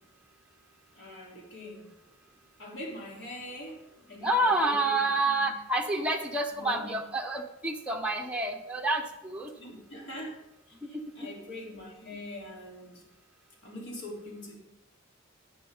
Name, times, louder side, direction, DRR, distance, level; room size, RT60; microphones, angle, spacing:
voice 1, 0.9-1.9 2.6-5.5 6.5-6.9 9.5-10.4 10.7-13.1 13.6-14.6, left 1 dB, 60° left, -3 dB, 3.8 m, -43 dB
voice 2, 4.2-9.5, right 2 dB, 5° right, 2 dB, 0.8 m, -28 dB
17.5 x 6.1 x 3.9 m, 0.90 s
head